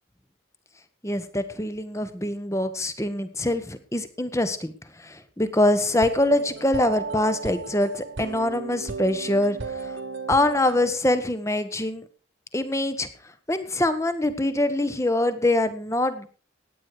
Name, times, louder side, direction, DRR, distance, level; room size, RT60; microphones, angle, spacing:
voice 1, 1.0-4.7 5.0-9.9 10.3-12.0 12.5-13.1 13.5-16.3, left 1 dB, 15° left, 11 dB, 1.2 m, -24 dB
sound 1, 5.9-11.0, right 4 dB, 85° right, 1.4 m, -35 dB
16.0 x 9.7 x 4.9 m, 0.39 s
head